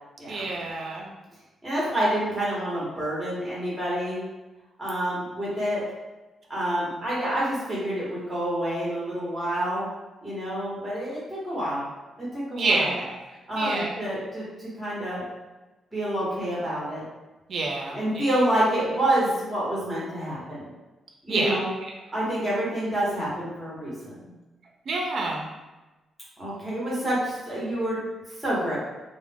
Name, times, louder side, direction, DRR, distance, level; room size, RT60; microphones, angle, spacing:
voice 1, 0.3-1.1 12.5-13.2 13.5-14.0 17.5-18.3 21.3-21.6 24.9-25.4, right 3 dB, 50° right, 0 dB, 0.5 m, -27 dB
voice 2, 1.6-4.3 4.8-5.8 6.5-9.9 10.2-11.9 12.2-13.0 13.5-15.2 15.9-17.0 17.9-20.6 21.2-21.7 22.1-24.3 26.4-28.0 28.4-28.8, right 1 dB, 5° right, -7 dB, 1.0 m, -28 dB
2.4 x 2.1 x 3.3 m, 1.1 s
wide cardioid pair, 160°, 0 cm